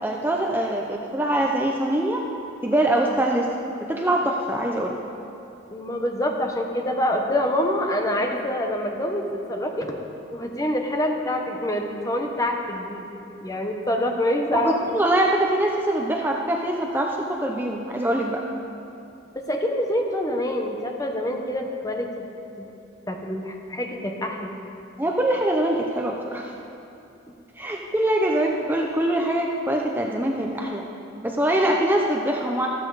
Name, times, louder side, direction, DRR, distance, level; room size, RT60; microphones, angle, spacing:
voice 1, 0.0-2.2 2.6-3.5 3.8-5.0 14.5-18.4 25.0-26.5 27.6-30.9 31.2-32.7, right 1 dB, 10° right, 0 dB, 0.7 m, -23 dB
voice 2, 5.7-10.0 10.3-13.0 13.4-14.7 19.3-22.2 22.6-22.7 23.1-24.5 27.6-27.7, left 1 dB, 20° left, 2 dB, 1.1 m, -26 dB
14.5 x 13.5 x 4.0 m, 2.8 s
head